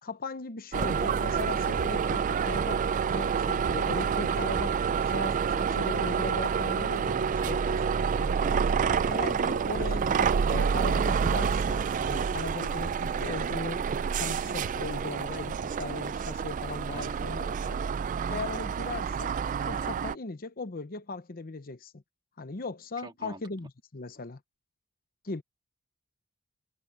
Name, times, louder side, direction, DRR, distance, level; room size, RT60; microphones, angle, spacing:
voice 1, 0.0-2.8 3.1-8.6 9.1-13.9 14.1-17.8 18.3-19.4 19.7-22.0 22.4-24.4 25.2-25.4, left 3 dB, 40° left, 0.8 m, -38 dB
sound 1, 0.7-20.2, right 6 dB, 35° right, 0.3 m, -28 dB
voice 2, 7.4-8.1 16.8-17.2 23.0-23.4, right 2 dB, 20° right, 1.8 m, -46 dB
head